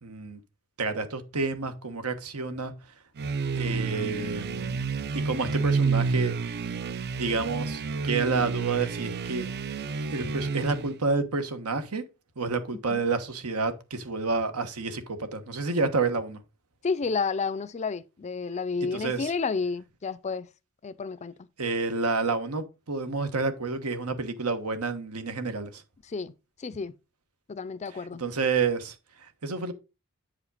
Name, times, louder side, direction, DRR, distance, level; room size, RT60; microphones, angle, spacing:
voice 1, 0.0-0.4 0.8-2.7 3.5-4.8 5.1-6.3 7.2-9.5 10.1-12.0 12.4-16.4 18.9-19.3 21.6-25.8 28.2-28.9 29.4-29.7, right 4 dB, 90° right, 1.2 m, -29 dB
sound 1, 3.2-11.0, right 4 dB, 50° right, 0.5 m, -30 dB
voice 2, 16.8-20.5 20.8-21.5 26.1-26.3 26.6-26.9 27.5-28.2, left 4 dB, 30° left, 0.4 m, -31 dB
8.8 x 5.0 x 4.0 m
head